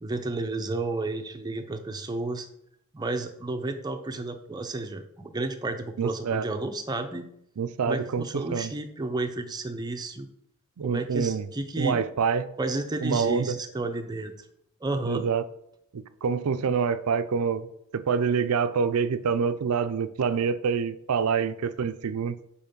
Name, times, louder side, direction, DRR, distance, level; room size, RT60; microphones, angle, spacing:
voice 1, 0.0-2.5 2.9-7.3 7.8-10.3 10.8-12.0 12.6-14.3 14.8-15.3, right 2 dB, 20° right, 0.5 m, -32 dB
voice 2, 6.0-6.5 7.6-8.7 10.8-11.5 11.8-12.5 13.0-13.6 15.0-15.4 15.9-17.7 17.9-22.4, right 6 dB, 75° right, 0.4 m, -26 dB
5.6 x 4.3 x 5.3 m
head